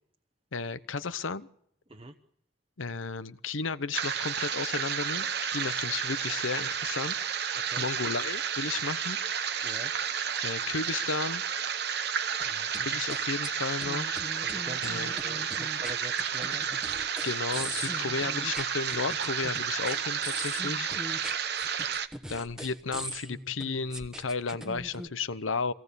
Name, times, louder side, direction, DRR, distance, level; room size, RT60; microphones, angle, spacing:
voice 1, 0.5-1.5 2.8-7.5 7.8-9.2 10.4-11.4 12.8-14.2 14.8-15.1 17.2-20.9 22.3-25.7, left 4 dB, 80° left, 15 dB, 0.8 m, -33 dB
sound 1, 3.9-22.1, right 7 dB, 55° right, 0.9 m, -31 dB
sound 2, 12.4-13.5 13.8-25.1, equal, 5° right, 1.1 m, -41 dB
voice 2, 14.4-16.7, right 2 dB, 25° right, 2 dB, 1.0 m, -44 dB
24.5 x 17.0 x 6.9 m, 0.72 s
head